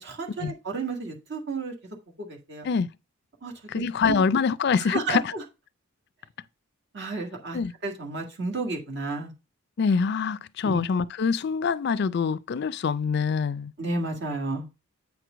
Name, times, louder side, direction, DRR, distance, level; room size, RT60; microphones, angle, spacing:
voice 1, 0.0-1.7 2.3-2.7 3.4-4.2 4.9-5.2 6.9-9.3 10.6-10.8 13.8-14.6, right 3 dB, 55° right, 1.8 m, -32 dB
voice 2, 3.7-5.3 7.5-7.7 9.8-13.7, left 5 dB, 55° left, 0.4 m, -25 dB
8.6 x 4.6 x 5.0 m
head